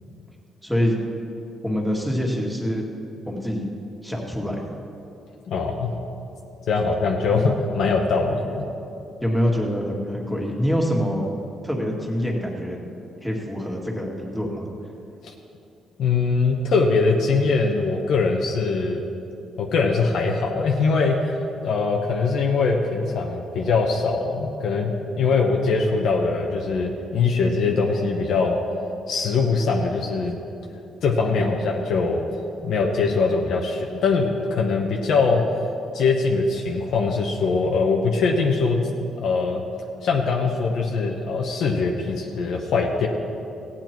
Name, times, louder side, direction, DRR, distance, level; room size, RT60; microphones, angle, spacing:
voice 1, 0.6-1.0 1.6-2.8 3.3-3.7 4.0-4.7 7.3-7.5 9.2-11.3 11.6-12.8 13.2-14.7 31.3-31.5, equal, ahead, -1 dB, 2.0 m, -25 dB
voice 2, 5.5-5.9 6.7-8.6 15.2-15.3 16.0-19.0 19.6-21.2 21.6-28.6 29.1-30.4 31.0-32.2 32.6-35.4 35.9-38.8 39.2-39.6 40.0-43.1, left 4 dB, 75° left, 1 dB, 1.0 m, -22 dB
15.5 x 8.8 x 4.5 m, 2.7 s
cardioid pair, 90°, 0 cm